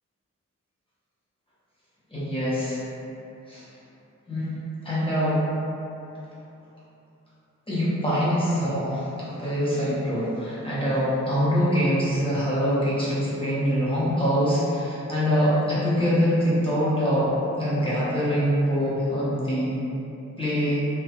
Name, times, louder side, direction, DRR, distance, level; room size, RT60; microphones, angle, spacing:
voice 1, 2.1-2.9 3.5-3.7 4.3-5.4 7.7-19.8 20.4-20.9, equal, 20° left, -10 dB, 0.9 m, -24 dB
2.8 x 2.2 x 2.8 m, 2.7 s
wide cardioid pair, 105°, 30 cm